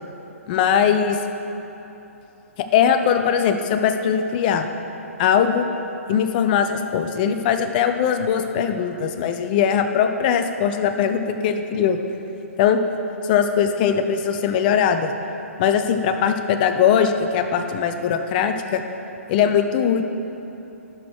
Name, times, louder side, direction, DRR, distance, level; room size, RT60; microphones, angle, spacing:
voice 1, 0.5-1.2 2.7-4.7 5.2-5.7 6.1-12.0 12.6-12.8 13.2-15.1 15.6-18.8 19.3-20.1, left 8 dB, 35° left, 8 dB, 0.6 m, -20 dB
11.0 x 6.1 x 4.7 m, 3.0 s
figure-of-eight pair, 125°, 8 cm